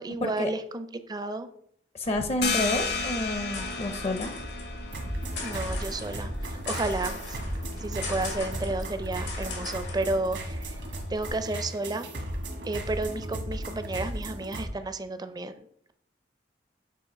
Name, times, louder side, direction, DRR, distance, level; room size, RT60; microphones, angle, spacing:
voice 1, 0.0-1.5 5.4-7.4 7.8-10.8 11.1-12.1 12.6-15.6, right 2 dB, 25° right, 10 dB, 0.4 m, -32 dB
sound 1, 2.0-11.3, left 2 dB, 85° left, 1.6 m, -39 dB
voice 2, 2.0-4.3, left 1 dB, 35° left, 8 dB, 0.5 m, -29 dB
sound 2, 2.4-7.8, left 4 dB, 70° left, 0.9 m, -34 dB
sound 3, 4.9-14.7, right 1 dB, 80° right, 1.2 m, -36 dB
7.7 x 2.8 x 5.0 m, 0.69 s
head